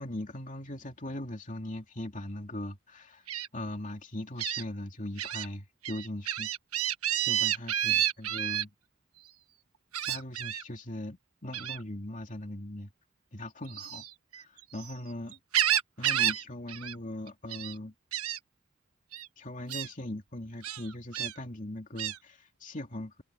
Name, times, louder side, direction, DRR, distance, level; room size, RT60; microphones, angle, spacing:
voice 1, 0.0-6.5 7.2-8.7 10.0-12.9 13.3-14.1 14.3-15.4 16.0-17.9 19.4-23.2, left 1 dB, 35° left, 2.7 m, -40 dB
Gull seagull, 3.3-3.5 4.4-4.6 5.2-5.5 5.8-8.6 9.9-10.6 11.5-11.8 13.7-14.9 15.3-16.4 16.7-17.0 17.3-17.7 18.1-18.4 19.1-19.3 19.7-19.9 20.6-21.3 22.0-22.2, right 11 dB, 85° right, 1.4 m, -30 dB
head